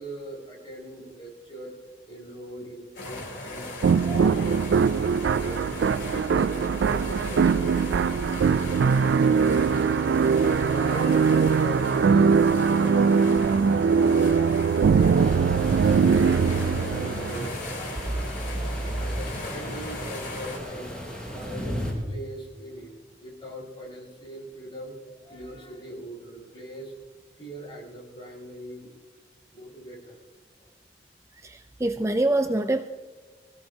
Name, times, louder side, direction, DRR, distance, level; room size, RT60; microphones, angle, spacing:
voice 1, 0.0-1.7 2.1-5.0 5.3-10.0 10.4-13.0 14.9-18.1 19.0-20.9 21.3-21.8 22.1-22.9 23.2-26.9 27.4-28.9 29.5-30.2, right 1 dB, 30° left, -5 dB, 5.9 m, -40 dB
sound 1, 2.9-20.6, left 2 dB, 85° left, 5.5 m, -38 dB
sound 2, 3.8-17.5, right 6 dB, 80° right, 0.3 m, -21 dB
sound 3, 15.1-21.9, equal, 5° left, 5.0 m, -35 dB
voice 2, 31.4-32.9, right 2 dB, 15° right, 8 dB, 0.4 m, -25 dB
24.5 x 17.0 x 2.8 m, 1.4 s
head